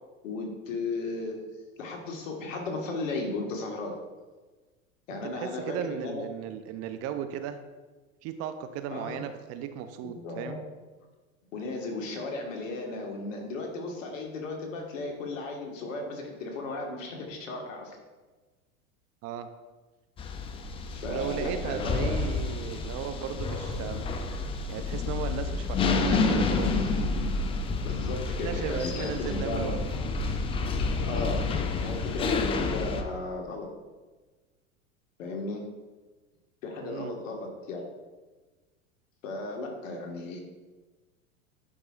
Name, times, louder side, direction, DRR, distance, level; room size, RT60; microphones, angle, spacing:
voice 1, 0.2-1.4 1.8-3.9 5.1-6.2 8.9-9.2 10.0-10.6 11.5-18.0 20.8-22.1 27.8-29.7 31.0-31.5 31.8-33.7 35.2-35.6 36.6-37.8 39.2-40.4, left 3 dB, 70° left, 1 dB, 1.6 m, -35 dB
voice 2, 5.3-7.6 8.2-10.6 19.2-19.5 21.0-24.1 24.7-27.0 28.4-29.8 36.8-37.1, right 9 dB, 40° right, 9 dB, 0.5 m, -36 dB
sound 1, 20.2-33.0, left 4 dB, 15° left, 0.3 m, -29 dB
11.0 x 4.7 x 2.4 m, 1.3 s
hypercardioid pair, 90°, 40 cm